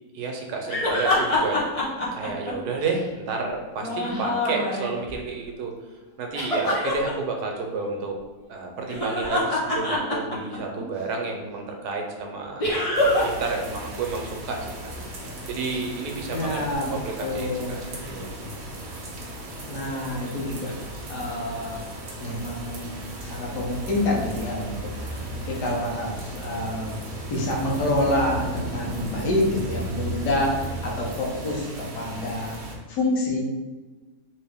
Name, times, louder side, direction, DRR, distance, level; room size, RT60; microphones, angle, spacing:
voice 1, 0.1-1.6 2.1-5.7 6.2-8.1 8.5-12.8 13.2-14.9 15.5-16.6 16.9-17.8 18.1-18.3, right 4 dB, 75° right, 2 dB, 1.1 m, -31 dB
sound 1, 0.7-3.0 3.8-5.2 6.3-7.1 8.8-10.8 12.6-13.4 13.7-13.8 16.7-16.8, left 1 dB, 50° left, 0.4 m, -25 dB
sound 2, 12.9-32.7, equal, 55° right, 0.8 m, -35 dB
voice 2, 16.3-17.9 19.7-21.8 22.2-27.0 27.3-32.6 32.9-33.4, left 1 dB, 80° left, -2 dB, 1.5 m, -28 dB
3.2 x 2.8 x 3.4 m, 1.2 s
omnidirectional pair, 1.8 m